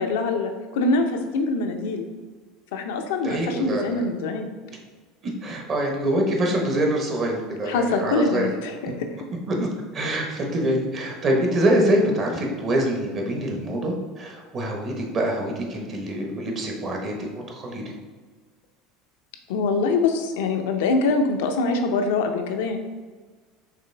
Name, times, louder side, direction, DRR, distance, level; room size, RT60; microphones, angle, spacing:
voice 1, 0.0-2.1 2.7-4.5 7.6-9.1 19.5-22.8, left 3 dB, 80° left, 5 dB, 0.5 m, -24 dB
voice 2, 3.2-4.0 5.4-8.5 9.5-9.7 9.9-17.1 17.6-17.8, right 1 dB, 40° right, 1 dB, 1.0 m, -25 dB
5.1 x 3.2 x 3.3 m, 1.4 s
supercardioid pair, 105°, 0 cm